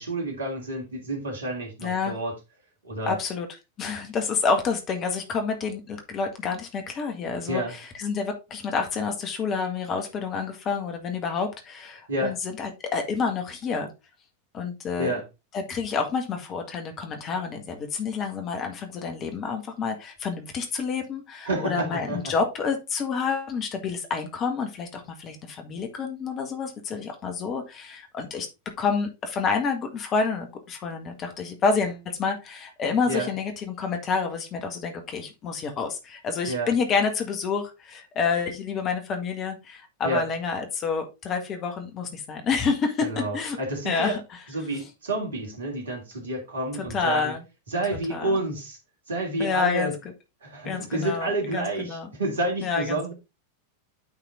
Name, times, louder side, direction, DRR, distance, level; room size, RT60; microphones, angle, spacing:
voice 1, 0.0-2.3 2.8-3.2 7.5-7.7 12.1-12.3 15.0-15.2 21.4-22.3 33.1-33.3 36.5-36.7 40.0-40.3 43.0-44.2 44.5-47.3 47.7-48.8 49.1-49.9 50.4-53.1, right 2 dB, 65° right, 1 dB, 2.9 m, -29 dB
voice 2, 1.8-2.2 3.1-3.5 3.8-13.9 14.5-15.1 15.5-28.5 28.8-43.6 43.9-44.2 46.8-47.4 48.1-48.4 49.4-49.9 50.7-52.1 52.6-53.1, left 5 dB, 30° left, 5 dB, 1.8 m, -28 dB
8.9 x 4.2 x 3.9 m, 0.25 s
figure-of-eight pair, 90°, 0 cm